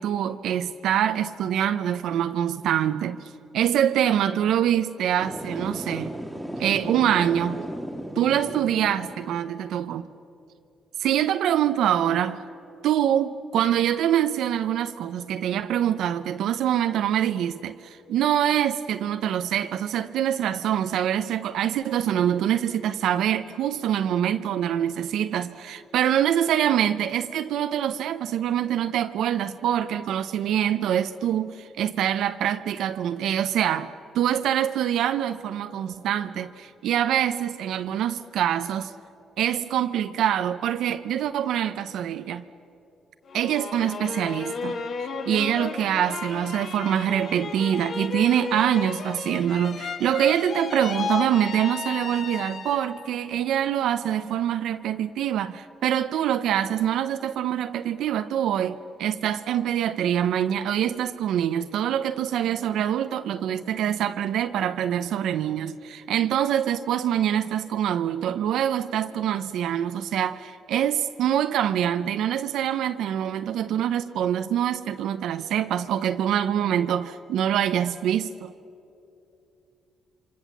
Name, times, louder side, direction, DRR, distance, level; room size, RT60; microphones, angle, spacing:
voice 1, 0.0-6.1 6.6-7.6 8.2-10.1 11.0-12.4 12.8-38.9 39.4-42.4 43.3-78.5, right 10 dB, 80° right, 0.7 m, -25 dB
sound 1, 5.2-9.4, equal, 5° right, 2.3 m, -35 dB
sound 2, 43.3-53.1 53.5-54.2, left 5 dB, 50° left, 1.1 m, -34 dB
27.5 x 25.0 x 7.3 m
cardioid pair, 90°, 0 cm